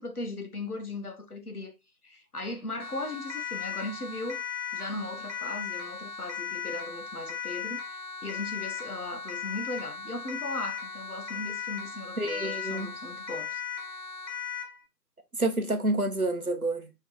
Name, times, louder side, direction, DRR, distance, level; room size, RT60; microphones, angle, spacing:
voice 1, 0.0-1.7 2.0-4.4 4.7-7.8 8.2-13.6, left 2 dB, 60° left, 1.0 m, -37 dB
Siren, 2.8-14.8, left 7 dB, 85° left, 1.3 m, -37 dB
voice 2, 12.2-12.9 15.4-16.9, right 2 dB, 60° right, 0.9 m, -28 dB
4.7 x 3.1 x 3.2 m
figure-of-eight pair, 180°, 50 cm